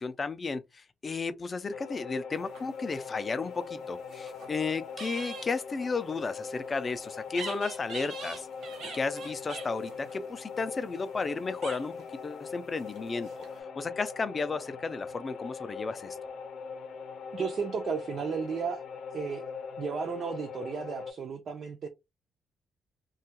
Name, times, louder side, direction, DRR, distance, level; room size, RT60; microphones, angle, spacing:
voice 1, 0.0-8.5 8.9-11.9 12.2-13.3 13.8-16.2, left 4 dB, 25° left, 0.3 m, -33 dB
sound 1, 1.7-21.1, left 5 dB, 85° left, 0.6 m, -41 dB
sound 2, 2.3-3.1 3.8-4.6 4.9-5.5 7.3-11.3 11.6-12.1 12.8-13.6, right 4 dB, 75° right, 1.0 m, -44 dB
voice 2, 17.3-18.8 19.1-19.4 19.8-21.9, right 6 dB, 45° right, 0.4 m, -34 dB
2.8 x 2.3 x 2.8 m
cardioid pair, 160°, 0 cm